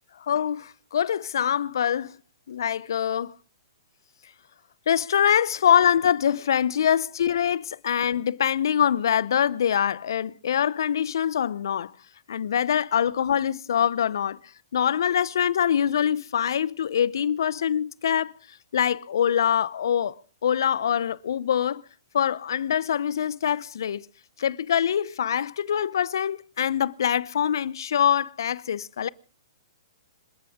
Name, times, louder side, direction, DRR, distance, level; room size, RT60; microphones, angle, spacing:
voice 1, 0.2-2.2 2.5-3.3 4.9-11.9 12.3-14.4 14.7-18.4 18.7-21.8 22.1-24.1 24.4-29.1, left 9 dB, 65° left, 0.7 m, -24 dB
27.0 x 13.5 x 3.6 m
hypercardioid pair, 125°, 2 cm